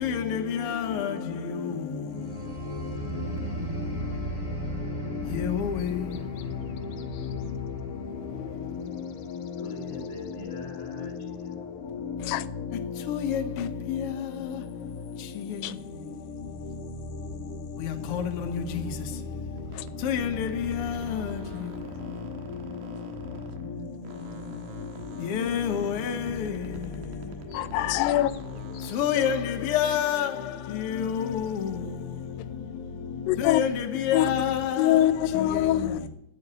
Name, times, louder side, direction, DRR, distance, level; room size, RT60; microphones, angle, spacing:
voice 1, 0.0-1.1 5.4-5.9 13.1-13.4 18.1-18.2 20.0-20.5 20.8-20.9 25.3-26.1 28.9-29.4 29.7-30.3 30.9-31.4 33.4-33.7 34.1-34.8, left 8 dB, 70° left, 1.4 m, -26 dB
sound 1, 2.1-12.4 12.8-13.1, right 4 dB, 10° right, 3.2 m, -39 dB
voice 2, 2.9-4.5 9.6-12.1 17.9-18.0 23.3-25.1, left 1 dB, 40° left, 2.5 m, -44 dB
sound 2, 19.5-23.8 24.0-29.5, right 4 dB, 85° right, 3.0 m, -45 dB
voice 3, 27.5-28.3 33.3-33.6 34.1-34.3 34.8-36.0, left 13 dB, 90° left, 2.3 m, -23 dB
11.0 x 8.0 x 8.7 m
omnidirectional pair, 3.9 m